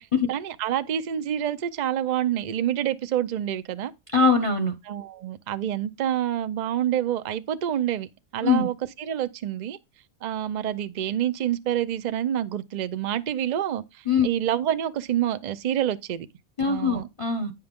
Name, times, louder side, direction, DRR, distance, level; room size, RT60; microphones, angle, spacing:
voice 1, 0.3-3.9 4.8-9.8 10.2-13.8 14.2-16.3 16.6-17.1, right 11 dB, 50° right, 0.5 m, -27 dB
voice 2, 4.1-4.7 8.4-8.7 14.1-14.3 16.6-17.5, left 5 dB, 30° left, 0.7 m, -22 dB
9.6 x 5.6 x 3.6 m
omnidirectional pair, 1.4 m